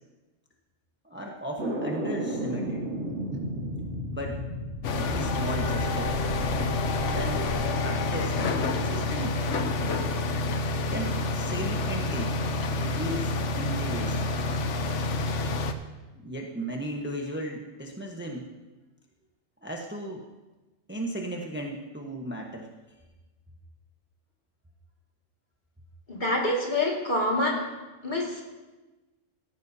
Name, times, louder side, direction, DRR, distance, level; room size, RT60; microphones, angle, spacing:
voice 1, 1.0-2.9 4.1-4.4 4.8-6.2 7.1-7.5 7.8-9.5 10.9-12.4 12.7-14.2 16.2-18.5 19.6-20.2 20.9-22.7, right 1 dB, 10° right, 0 dB, 1.0 m, -36 dB
sound 1, 1.6-7.7, right 1 dB, 65° right, 2.1 m, -34 dB
sound 2, 4.8-15.7, left 3 dB, 70° left, 1.1 m, -28 dB
voice 2, 26.1-27.7 28.0-28.4, left 1 dB, 35° left, -2 dB, 2.3 m, -26 dB
16.0 x 14.0 x 2.8 m, 1.1 s
omnidirectional pair, 1.3 m